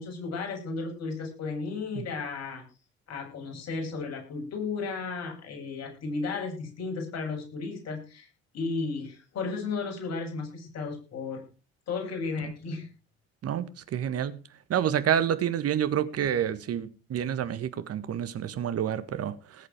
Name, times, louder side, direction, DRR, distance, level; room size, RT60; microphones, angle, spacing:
voice 1, 0.0-2.6 3.1-8.3 8.5-11.4 11.9-12.9, left 4 dB, 55° left, 8.0 m, -34 dB
voice 2, 13.9-14.4 14.7-19.3, right 9 dB, 50° right, 1.6 m, -28 dB
19.5 x 8.4 x 4.7 m
hypercardioid pair, 55°, 30 cm